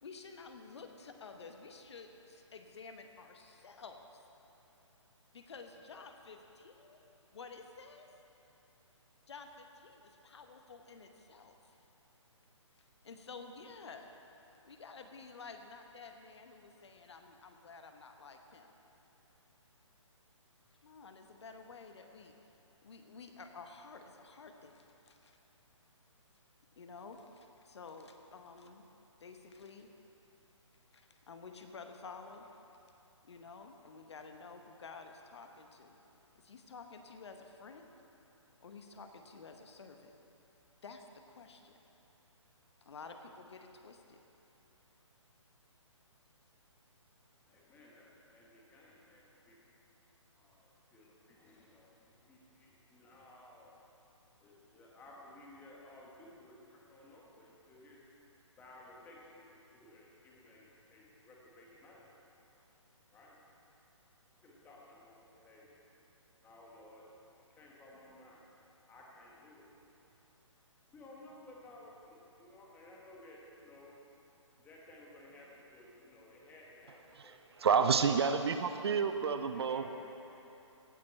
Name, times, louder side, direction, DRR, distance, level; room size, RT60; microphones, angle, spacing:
voice 1, 0.0-4.0 5.3-7.0 7.3-8.1 9.3-11.8 12.8-14.1 14.6-18.7 20.8-22.3 22.8-25.4 26.8-28.8 29.2-29.9 30.9-32.6 33.2-36.0 36.3-37.9 38.6-40.1 40.8-41.8 42.8-44.2, left 4 dB, 60° left, 5 dB, 1.0 m, -51 dB
voice 2, 47.5-49.6 50.4-53.8 54.4-58.1 58.6-62.1 63.1-63.4 64.3-65.8 66.4-69.7 70.9-74.0 74.6-77.4 77.9-78.4 79.5-80.4, left 1 dB, 10° left, -3 dB, 1.6 m, -57 dB
voice 3, 77.2-79.8, right 6 dB, 55° right, 9 dB, 0.6 m, -29 dB
16.5 x 7.5 x 4.4 m, 2.9 s
figure-of-eight pair, 140°, 16 cm